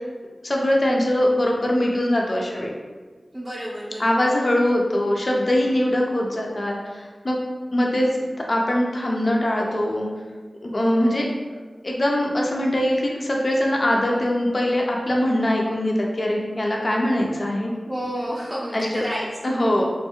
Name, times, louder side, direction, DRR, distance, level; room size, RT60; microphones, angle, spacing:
voice 1, 0.4-2.7 4.0-7.4 7.7-8.1 8.5-10.1 10.6-11.3 11.8-17.7 18.7-19.0 19.4-19.8, left 1 dB, 45° left, -1 dB, 0.4 m, -22 dB
voice 2, 3.3-4.3 17.9-19.3, equal, 30° right, -8 dB, 0.5 m, -30 dB
2.5 x 2.3 x 2.8 m, 1.4 s
wide cardioid pair, 50°, 0 cm